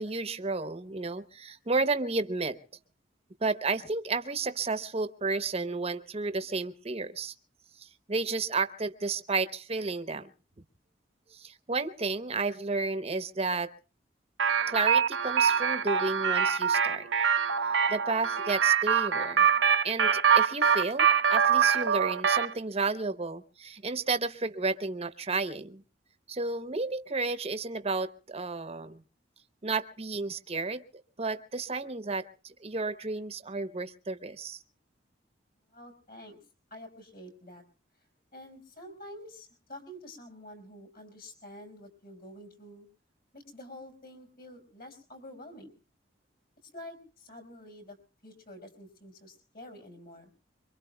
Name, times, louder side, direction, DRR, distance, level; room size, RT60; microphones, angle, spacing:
voice 1, 0.0-2.6 3.4-7.3 7.8-10.3 11.3-13.7 14.7-17.1 17.9-19.5 19.8-25.8 26.3-29.0 29.6-30.8 31.2-34.6, right 3 dB, 35° right, 11 dB, 0.8 m, -32 dB
sound 1, 14.4-22.5, right 7 dB, 85° right, 0.8 m, -24 dB
voice 2, 35.7-36.4 36.7-37.6 38.3-42.9 43.3-45.7 46.7-48.0 48.2-50.3, left 1 dB, 55° left, 5 dB, 5.3 m, -48 dB
25.5 x 23.5 x 2.3 m, 0.36 s
head